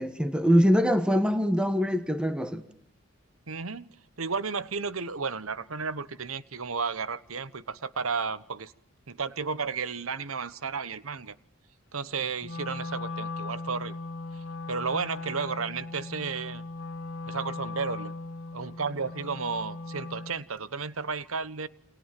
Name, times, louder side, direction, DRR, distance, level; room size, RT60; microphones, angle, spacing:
voice 1, 0.0-2.6, equal, 5° right, 1.4 m, -23 dB
voice 2, 3.5-8.7 9.1-11.3 11.9-14.0 14.7-16.6 17.3-18.1 18.5-21.7, right 5 dB, 85° right, 1.1 m, -33 dB
Wind instrument woodwind instrument, 12.4-20.4, left 3 dB, 70° left, 1.7 m, -38 dB
29.0 x 27.5 x 7.6 m
head